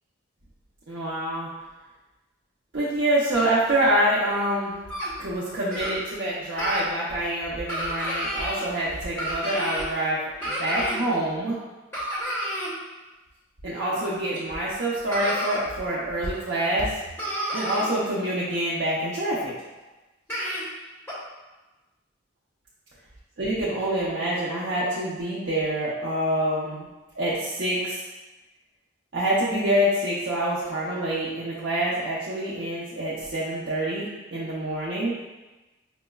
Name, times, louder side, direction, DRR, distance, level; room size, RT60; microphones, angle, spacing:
voice 1, 0.9-1.5 2.7-4.8 5.2-11.6 13.6-16.9 17.5-19.5 23.4-26.9 27.2-28.0 29.1-35.1, right 1 dB, 60° right, -9 dB, 0.6 m, -26 dB
sound 1, 4.9-5.1 5.7-5.9 6.6-6.8 7.7-8.6 9.2-9.9 10.4-11.0 11.9-12.7 14.3-14.4 15.1-15.6 16.3-16.4 16.8-16.9 17.2-17.9 19.6-19.7 20.3-20.6 21.1-21.2, equal, 10° left, 1.1 m, -30 dB
6.0 x 2.1 x 2.3 m, 1.1 s
head